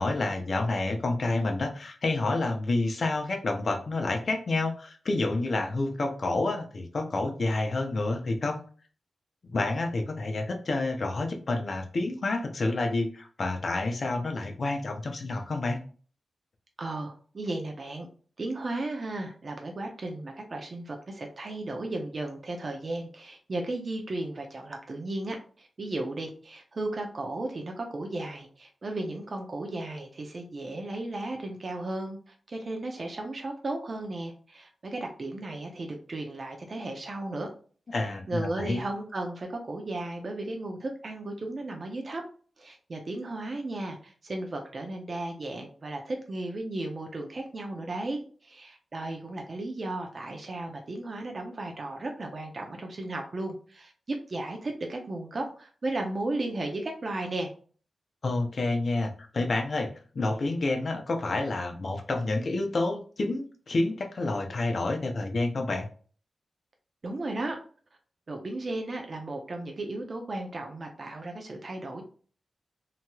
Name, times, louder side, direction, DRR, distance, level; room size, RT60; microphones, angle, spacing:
voice 1, 0.0-8.6 9.4-15.8 37.9-38.8 58.2-65.8, left 2 dB, 50° left, 3 dB, 0.6 m, -29 dB
voice 2, 16.8-18.1 18.4-37.5 38.3-42.2 42.6-57.5 67.0-67.6 68.3-72.0, right 2 dB, 45° right, 2 dB, 0.6 m, -35 dB
2.9 x 2.9 x 2.3 m, 0.41 s
wide cardioid pair, 115°, 0 cm